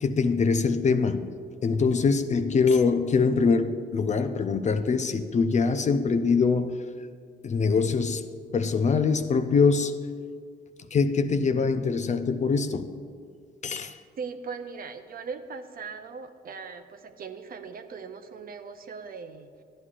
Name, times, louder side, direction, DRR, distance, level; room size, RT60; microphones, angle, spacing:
voice 1, 0.0-1.3 1.6-6.8 7.4-8.2 8.5-10.0 10.9-12.9 13.6-13.9, left 4 dB, 35° left, 0.5 m, -23 dB
voice 2, 14.2-19.6, right 5 dB, 45° right, 0.7 m, -39 dB
12.5 x 9.6 x 2.5 m
cardioid pair, 90°, 20 cm